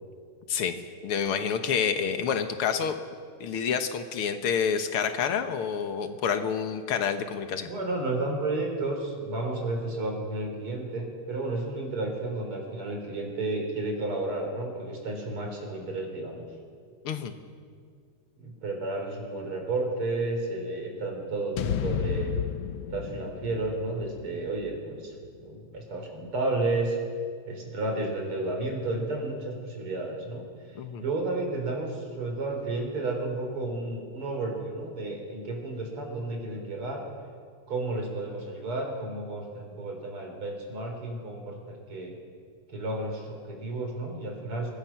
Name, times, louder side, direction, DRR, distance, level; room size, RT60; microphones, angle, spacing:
voice 1, 1.0-3.0 3.4-7.7 17.0-17.4 30.8-31.0, left 7 dB, 90° left, 8 dB, 2.1 m, -28 dB
voice 2, 7.7-16.5 18.4-22.3 22.9-25.1 25.4-27.0 27.5-30.4 31.0-37.0 37.7-42.2 42.7-44.7, right 2 dB, 85° right, 1 dB, 4.8 m, -32 dB
sound 1, 21.6-25.8, left 9 dB, 70° left, 1.5 m, -33 dB
22.5 x 21.0 x 5.9 m, 2.1 s
omnidirectional pair, 2.4 m